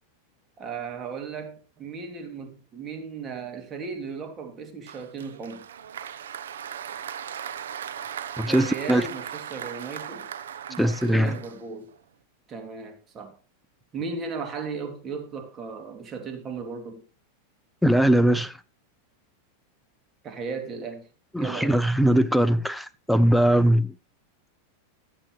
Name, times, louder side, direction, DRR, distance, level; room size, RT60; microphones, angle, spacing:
voice 1, 0.6-5.6 8.4-10.3 10.7-11.9 12.5-13.4 13.9-17.0 20.2-21.1 21.4-21.8, right 5 dB, 30° right, 2.7 m, -36 dB
Applause, 4.9-12.0, right 9 dB, 85° right, 0.9 m, -38 dB
voice 2, 8.4-9.0 10.8-11.3 17.8-18.5 21.3-23.9, right 1 dB, ahead, 0.7 m, -21 dB
15.0 x 7.7 x 3.2 m
hypercardioid pair, 120°, 0 cm